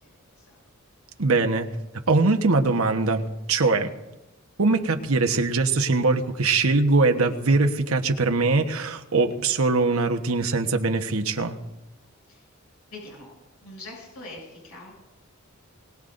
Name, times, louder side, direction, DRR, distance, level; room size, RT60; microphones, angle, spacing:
voice 1, 0.0-0.6 12.3-12.5 12.9-13.3 13.6-14.9, left 2 dB, 85° left, -3 dB, 7.3 m, -43 dB
voice 2, 1.2-1.7 2.1-3.2 3.5-3.9 4.6-11.6, right 3 dB, 85° right, 5 dB, 1.2 m, -22 dB
22.5 x 19.0 x 2.6 m, 0.99 s
head